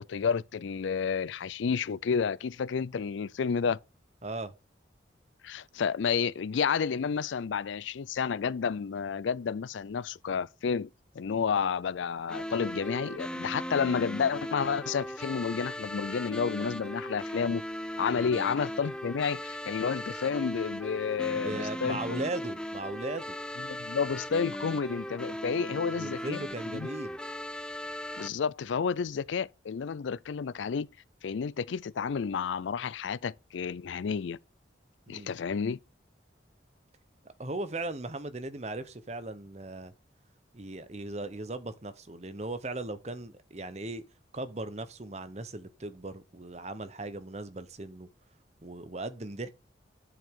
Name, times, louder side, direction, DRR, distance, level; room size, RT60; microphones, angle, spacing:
voice 1, 0.0-3.8 5.4-10.9 11.1-17.6 18.0-22.2 23.6-26.4 26.7-26.9 28.1-30.9 31.2-34.4 35.1-35.8, left 6 dB, 80° left, 0.4 m, -30 dB
voice 2, 4.2-4.5 18.1-18.4 21.3-23.4 25.6-27.2 35.1-35.3 37.2-39.9 40.5-44.0 44.3-48.1 48.6-49.5, right 2 dB, 35° right, 0.9 m, -38 dB
sound 1, 12.3-28.3, equal, 5° left, 0.4 m, -38 dB
10.0 x 7.7 x 3.7 m
head